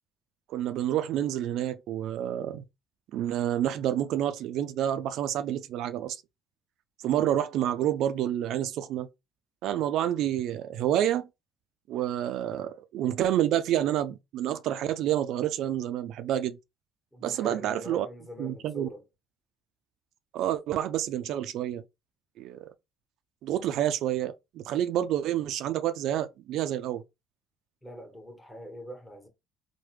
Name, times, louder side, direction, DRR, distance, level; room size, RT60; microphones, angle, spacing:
voice 1, 0.5-2.6 3.1-6.2 7.0-9.1 9.6-11.3 11.9-16.6 17.2-18.1 18.4-18.9 20.3-21.8 22.4-22.6 23.4-27.0, right 11 dB, 70° right, 0.3 m, -28 dB
voice 2, 17.1-19.0 27.8-29.3, equal, 10° left, 1.3 m, -43 dB
3.1 x 2.1 x 3.1 m
supercardioid pair, 75°, 0 cm